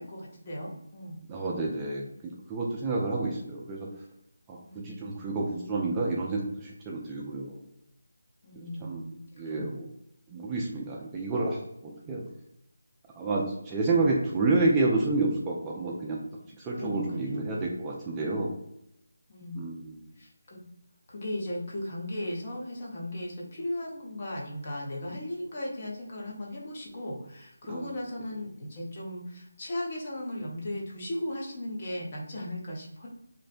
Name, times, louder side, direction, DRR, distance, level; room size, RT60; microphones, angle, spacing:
voice 1, 0.0-1.2 4.6-4.9 8.4-9.7 12.0-12.2 16.7-17.5 19.3-19.7 20.2-20.6 21.1-33.1, left 1 dB, 35° left, -3 dB, 0.6 m, -37 dB
voice 2, 1.3-3.9 4.5-7.6 8.6-9.0 9.4-9.9 10.3-12.2 13.2-16.2 16.6-18.5 19.5-20.0 27.7-27.9, right 3 dB, 15° right, -3 dB, 0.3 m, -29 dB
2.5 x 2.0 x 2.5 m, 0.80 s
figure-of-eight pair, 160°, 0 cm